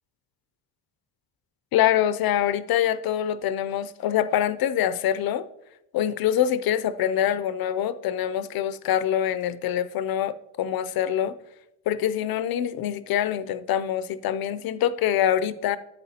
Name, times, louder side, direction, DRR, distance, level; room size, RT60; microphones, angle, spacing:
voice 1, 1.7-5.4 5.9-11.4 11.9-15.8, left 10 dB, 60° left, 14 dB, 0.6 m, -25 dB
11.0 x 8.1 x 2.8 m, 0.86 s
cardioid pair, 115°, 41 cm